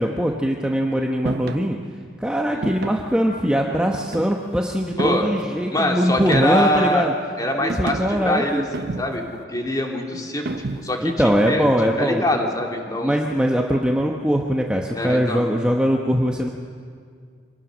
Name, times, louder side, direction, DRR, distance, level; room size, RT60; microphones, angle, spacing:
voice 1, 0.0-1.8 2.2-7.1 7.6-8.7 10.6-12.2 13.0-16.5, equal, 5° right, 1 dB, 1.0 m, -21 dB
sound 1, 1.3-1.7 2.6-3.1 3.9-4.5 5.0-5.5 6.2-6.8 7.7-8.2 8.7-9.4 10.5-11.1, right 2 dB, 60° right, 0.8 m, -30 dB
voice 2, 5.0-5.3 5.7-7.1 7.4-9.2 9.5-11.7 12.0-13.2 14.9-15.5, left 1 dB, 20° left, 1 dB, 2.4 m, -24 dB
25.5 x 18.5 x 6.3 m, 2.1 s
head